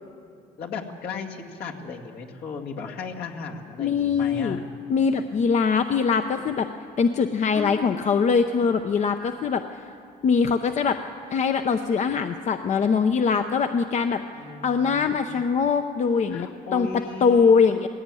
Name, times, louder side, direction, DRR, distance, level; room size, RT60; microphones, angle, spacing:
voice 1, 0.6-4.7 7.5-8.2 14.3-15.4 16.3-17.8, left 4 dB, 70° left, 0 dB, 2.2 m, -36 dB
voice 2, 3.8-4.6 4.9-6.7 7.0-9.6 10.2-11.0 11.3-14.2 14.6-17.9, left 5 dB, 45° left, 8 dB, 0.7 m, -22 dB
18.5 x 16.0 x 9.1 m, 2.5 s
cardioid pair, 110°, 17 cm